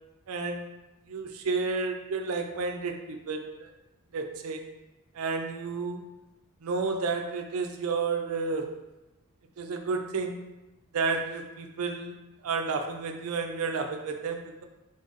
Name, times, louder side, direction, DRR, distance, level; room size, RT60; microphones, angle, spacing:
voice 1, 0.3-0.7 1.0-3.7 4.1-4.7 5.1-6.0 6.6-8.8 9.6-10.4 10.9-12.1 12.4-14.6, right 4 dB, 70° right, 4 dB, 0.4 m, -31 dB
3.9 x 3.6 x 2.5 m, 1.0 s
head